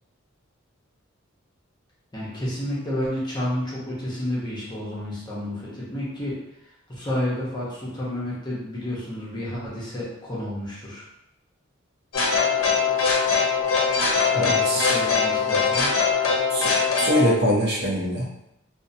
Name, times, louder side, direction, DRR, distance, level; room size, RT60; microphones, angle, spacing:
voice 1, 2.1-6.4 6.9-11.0 14.4-15.9, left 1 dB, 20° left, -7 dB, 0.8 m, -30 dB
sound 1, 12.1-17.3, left 5 dB, 85° left, 0.6 m, -22 dB
voice 2, 14.3-14.9 16.5-18.3, equal, 55° right, -3 dB, 0.5 m, -23 dB
2.6 x 2.1 x 2.6 m, 0.83 s
head